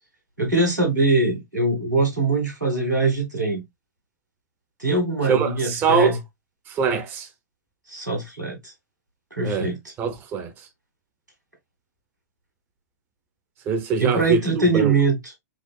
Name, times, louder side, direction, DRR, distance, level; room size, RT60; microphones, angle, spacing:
voice 1, 0.4-3.6 4.8-6.2 7.9-8.7 9.3-9.8 14.0-15.3, right 3 dB, 90° right, 1.6 m, -22 dB
voice 2, 5.3-6.2 6.7-7.3 9.4-9.7 10.0-10.5 13.7-14.4 14.7-14.9, right 5 dB, 20° right, 0.5 m, -22 dB
4.7 x 2.0 x 2.2 m
figure-of-eight pair, 105°, 9 cm